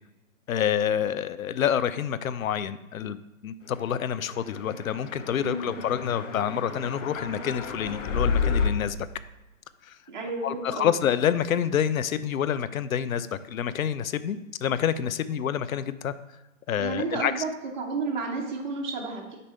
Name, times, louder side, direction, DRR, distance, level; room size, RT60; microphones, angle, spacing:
voice 1, 0.5-9.1 9.8-10.0 10.4-16.1 16.7-17.4, left 9 dB, 90° left, 14 dB, 0.5 m, -28 dB
sound 1, 4.2-8.7, left 5 dB, 65° left, 0.9 m, -30 dB
voice 2, 5.4-5.8 10.1-10.9 16.8-17.5 17.8-19.4, right 4 dB, 35° right, -2 dB, 0.9 m, -31 dB
5.2 x 4.2 x 5.5 m, 1.1 s
hypercardioid pair, 165°, 40 cm